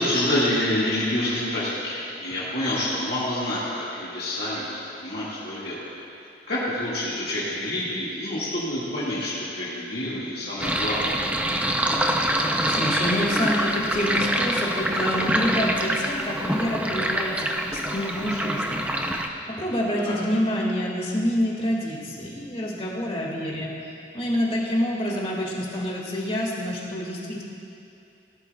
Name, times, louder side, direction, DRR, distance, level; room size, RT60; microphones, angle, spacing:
voice 1, 0.0-5.8 6.5-11.2 19.9-20.1, left 1 dB, 55° left, -10 dB, 1.8 m, -27 dB
Sink (filling or washing), 10.6-19.3, right 1 dB, 10° right, 0.5 m, -25 dB
voice 2, 12.2-17.5 17.7-23.7 24.1-27.4, equal, 30° left, -3 dB, 1.9 m, -27 dB
18.5 x 11.5 x 2.3 m, 2.7 s
head